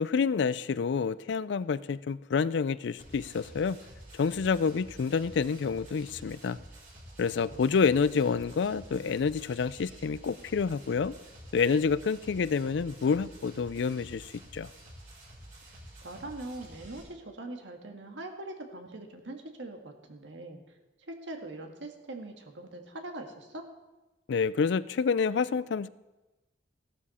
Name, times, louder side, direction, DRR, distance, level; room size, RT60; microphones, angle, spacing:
voice 1, 0.0-3.8 4.1-6.6 7.2-11.2 11.5-14.7 24.3-25.9, left 5 dB, 65° left, 18 dB, 0.4 m, -28 dB
sound 1, 3.0-17.0, right 1 dB, 45° right, 5.7 m, -50 dB
voice 2, 7.5-7.8 15.7-20.6 21.1-23.7, right 2 dB, 75° right, 3 dB, 1.7 m, -42 dB
15.5 x 12.0 x 4.2 m, 1.1 s
head